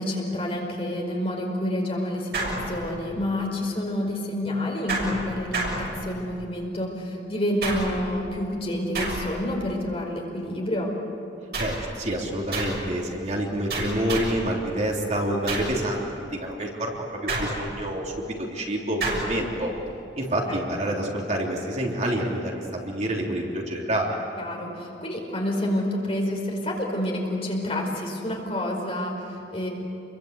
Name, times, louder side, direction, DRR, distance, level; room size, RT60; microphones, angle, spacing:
voice 1, 0.0-10.9 20.5-20.6 24.4-29.7, left 1 dB, 35° left, 0 dB, 4.9 m, -28 dB
sound 1, 2.3-3.2 4.9-6.4 7.6-8.2 8.9-9.6 11.5-11.9 12.5-12.9 13.7-14.5 15.5-15.9 17.3-17.9 19.0-19.4, right 2 dB, 60° right, 6.8 m, -30 dB
voice 2, 11.6-19.7 20.2-24.2, right 1 dB, 40° right, -1 dB, 3.4 m, -28 dB
28.5 x 23.0 x 8.2 m, 2.7 s
head